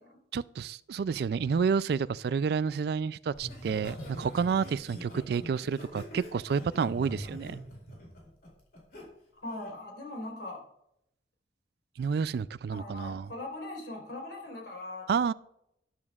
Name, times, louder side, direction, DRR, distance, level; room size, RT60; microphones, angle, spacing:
voice 1, 0.3-7.6 12.0-13.3 15.1-15.3, right 6 dB, 60° right, 0.3 m, -30 dB
Laughter, 3.3-9.0 9.5-9.8, equal, 55° left, 4.4 m, -44 dB
voice 2, 9.4-10.6 12.7-15.1, left 2 dB, 80° left, 3.9 m, -40 dB
12.0 x 11.5 x 2.4 m
head